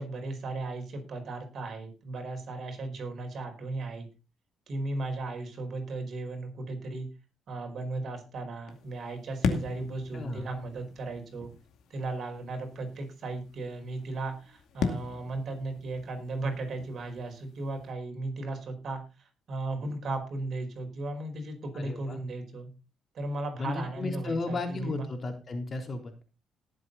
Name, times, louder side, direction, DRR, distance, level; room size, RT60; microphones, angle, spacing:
voice 1, 0.0-4.1 4.7-7.1 7.5-11.5 11.9-19.0 19.5-22.7 23.1-25.0, right 2 dB, 55° right, 4 dB, 4.9 m, -36 dB
sound 1, 8.7-17.9, left 5 dB, 80° left, 2.3 m, -38 dB
voice 2, 10.1-10.5 21.7-22.2 23.6-26.2, left 3 dB, 40° left, 4 dB, 3.7 m, -34 dB
18.5 x 7.7 x 4.1 m, 0.30 s
cardioid pair, 90°, 0 cm